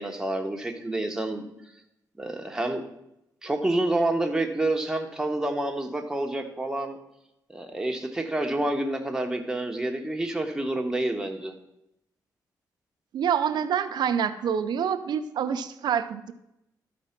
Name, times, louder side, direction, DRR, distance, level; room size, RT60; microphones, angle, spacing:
voice 1, 0.0-1.5 2.2-2.8 3.4-7.0 7.5-11.5, right 1 dB, 10° right, 3 dB, 1.2 m, -28 dB
voice 2, 13.1-16.3, right 8 dB, 80° right, 9 dB, 0.6 m, -26 dB
12.5 x 4.3 x 5.8 m, 0.85 s
cardioid pair, 105°, 7 cm